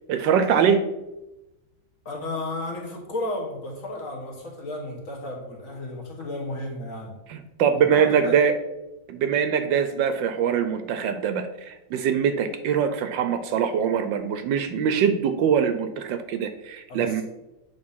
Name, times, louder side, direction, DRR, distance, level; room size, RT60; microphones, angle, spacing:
voice 1, 0.1-0.8 7.3-8.5 9.1-17.2, right 7 dB, 75° right, 9 dB, 1.2 m, -23 dB
voice 2, 2.0-7.1 7.8-8.4 16.9-17.2, left 2 dB, 45° left, 0 dB, 1.3 m, -33 dB
7.9 x 3.7 x 5.5 m, 0.98 s
omnidirectional pair, 2.2 m